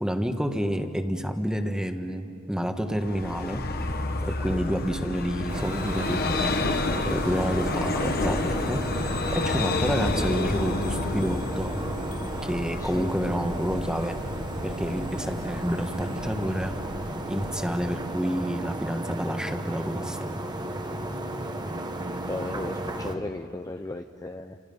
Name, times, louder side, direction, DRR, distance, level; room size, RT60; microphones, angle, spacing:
voice 1, 0.0-3.7 4.2-6.6 7.0-11.8 12.4-14.2 14.6-16.7 17.3-20.2, equal, 5° right, 5 dB, 1.4 m, -29 dB
Vehicle, 2.9-18.4, left 2 dB, 50° left, 1.3 m, -30 dB
sound 1, 5.5-23.1, right 1 dB, 20° right, 1.3 m, -34 dB
voice 2, 22.2-24.6, left 2 dB, 15° left, 6 dB, 0.6 m, -36 dB
30.0 x 27.5 x 5.5 m, 2.7 s
head